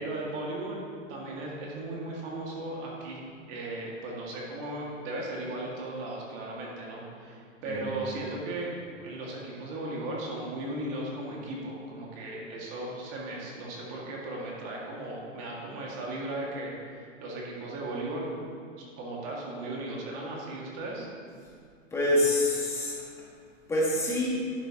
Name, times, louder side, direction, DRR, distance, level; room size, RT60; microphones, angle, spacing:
voice 1, 0.0-3.2 3.5-8.7 9.0-18.3 19.0-21.1, right 2 dB, 30° right, -3 dB, 2.1 m, -36 dB
voice 2, 21.9-22.9 23.7-24.4, left 1 dB, 5° left, -5 dB, 1.7 m, -26 dB
11.5 x 8.8 x 2.9 m, 2.3 s
hypercardioid pair, 155°, 38 cm